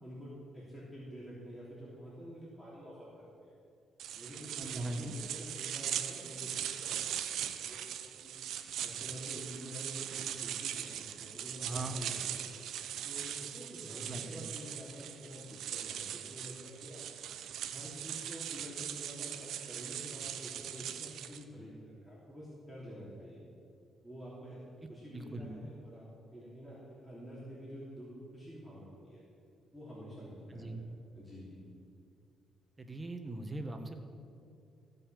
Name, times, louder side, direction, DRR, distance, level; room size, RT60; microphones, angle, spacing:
voice 1, 0.0-3.5 4.1-8.4 8.8-12.5 13.0-17.0 17.7-23.4 24.0-24.6 24.9-26.1 26.3-29.2 29.7-30.9 31.1-31.6, equal, 5° left, -8 dB, 3.1 m, -48 dB
sound 1, 4.0-21.4, right 10 dB, 80° right, 0.6 m, -40 dB
voice 2, 4.6-5.2 11.6-12.0 14.0-14.4 24.8-25.5 30.5-30.8 32.8-34.1, right 2 dB, 20° right, 5 dB, 1.3 m, -41 dB
15.0 x 5.4 x 7.5 m, 2.5 s
cardioid pair, 85°, 0 cm